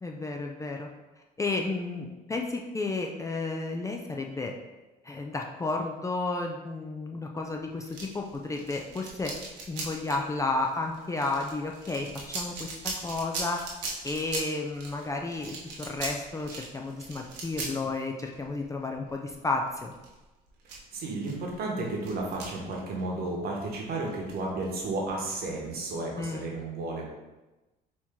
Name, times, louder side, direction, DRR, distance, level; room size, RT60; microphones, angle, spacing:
voice 1, 0.0-0.9 1.4-4.5 5.0-9.3 9.7-13.7 14.0-19.9 26.2-26.5, left 3 dB, 15° left, 1 dB, 0.4 m, -32 dB
sound 1, 7.8-23.7 24.1-25.9, right 3 dB, 85° right, 1.1 m, -40 dB
voice 2, 20.6-27.1, right 2 dB, 60° right, -1 dB, 1.2 m, -33 dB
4.4 x 2.9 x 3.6 m, 1.1 s
cardioid pair, 105°, 18 cm